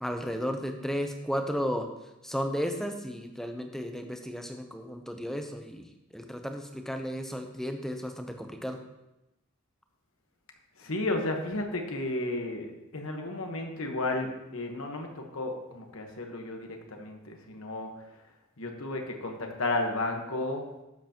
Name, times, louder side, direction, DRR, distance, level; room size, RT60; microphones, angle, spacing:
voice 1, 0.0-1.9 2.2-5.8 6.1-8.8, equal, ahead, 5 dB, 0.7 m, -34 dB
voice 2, 10.8-18.2 18.6-20.7, left 2 dB, 65° left, 3 dB, 1.3 m, -33 dB
12.0 x 8.0 x 3.0 m, 0.94 s
head